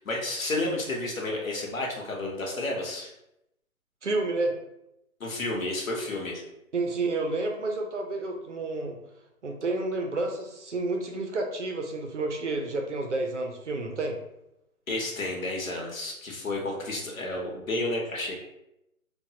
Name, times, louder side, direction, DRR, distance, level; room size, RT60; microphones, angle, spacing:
voice 1, 0.0-3.1 5.2-6.4 14.9-18.4, left 2 dB, 65° left, -1 dB, 1.0 m, -31 dB
voice 2, 4.0-4.5 6.7-9.0 9.4-14.2, right 2 dB, 55° right, 2 dB, 0.5 m, -30 dB
3.1 x 2.3 x 2.8 m, 0.85 s
hypercardioid pair, 180°, 43 cm